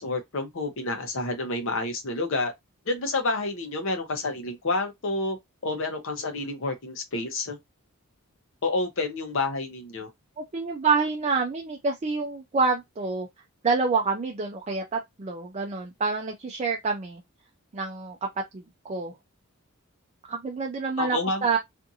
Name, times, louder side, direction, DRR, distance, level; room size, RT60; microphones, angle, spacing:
voice 1, 0.0-2.5 2.9-5.4 5.6-7.6 8.6-10.1 21.0-21.5, left 2 dB, 65° left, 0.8 m, -29 dB
voice 2, 10.4-13.3 13.6-17.2 17.7-18.3 18.5-19.1 20.3-21.6, right 4 dB, 30° right, 0.4 m, -27 dB
2.5 x 2.5 x 2.7 m
head